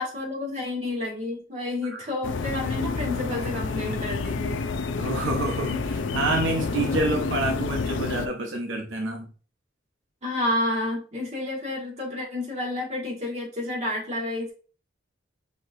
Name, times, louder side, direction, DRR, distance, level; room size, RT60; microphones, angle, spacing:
voice 1, 0.0-4.6 10.2-14.5, left 2 dB, 35° right, -3 dB, 1.8 m, -30 dB
sound 1, 2.2-8.3, left 4 dB, 75° left, 0.4 m, -29 dB
voice 2, 5.0-9.3, right 2 dB, 85° right, 2 dB, 0.8 m, -28 dB
6.1 x 2.9 x 2.6 m, 0.38 s
head